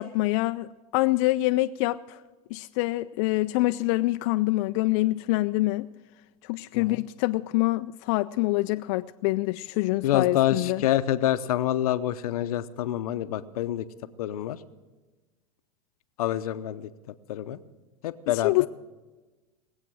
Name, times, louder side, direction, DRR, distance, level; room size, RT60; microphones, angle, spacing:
voice 1, 0.0-2.2 2.5-5.9 6.4-10.8 18.4-18.7, left 19 dB, 55° left, 10 dB, 0.4 m, -25 dB
voice 2, 10.0-13.9 14.2-14.6 16.2-16.9 17.3-17.6 18.0-18.5, left 12 dB, 80° left, 13 dB, 0.7 m, -27 dB
20.0 x 8.1 x 6.2 m, 1.2 s
supercardioid pair, 120°, 18 cm